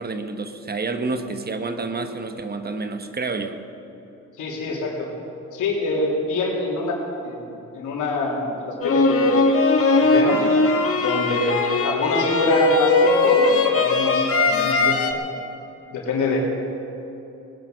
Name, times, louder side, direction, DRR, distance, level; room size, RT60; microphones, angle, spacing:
voice 1, 0.0-3.6, right 3 dB, 30° right, 8 dB, 1.2 m, -29 dB
voice 2, 4.4-5.1 5.5-7.0 7.2-9.5 10.0-10.4 10.9-15.2 15.9-16.4, left 2 dB, 80° left, -2 dB, 3.5 m, -25 dB
sound 1, 8.8-15.1, left 3 dB, 50° left, 1.6 m, -19 dB
19.0 x 10.5 x 6.3 m, 3.0 s
cardioid pair, 90°, 30 cm